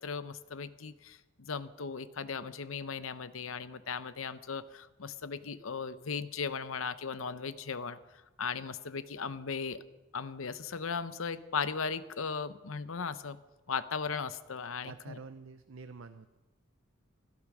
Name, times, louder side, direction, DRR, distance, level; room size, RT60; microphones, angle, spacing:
voice 1, 0.0-8.0 8.4-9.8 10.1-13.4 13.7-15.2, left 5 dB, 80° left, 13 dB, 0.8 m, -37 dB
voice 2, 14.8-16.4, right 4 dB, 75° right, 11 dB, 0.6 m, -48 dB
16.5 x 12.0 x 6.1 m, 1.1 s
head